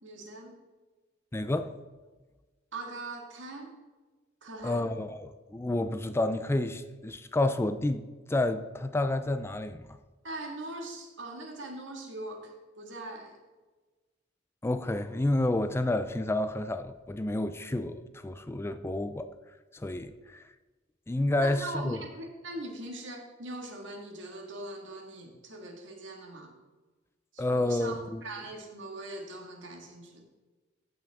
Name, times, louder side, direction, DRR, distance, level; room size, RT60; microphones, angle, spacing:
voice 1, 0.0-0.6 2.7-3.7 4.4-4.9 10.2-13.3 21.4-26.5 27.3-30.2, right 2 dB, 70° right, 1.9 m, -41 dB
voice 2, 1.3-1.7 4.6-10.0 14.6-19.3 19.7-20.4 21.1-22.0 27.4-28.2, left 2 dB, 15° left, 0.4 m, -30 dB
15.0 x 6.0 x 3.5 m
head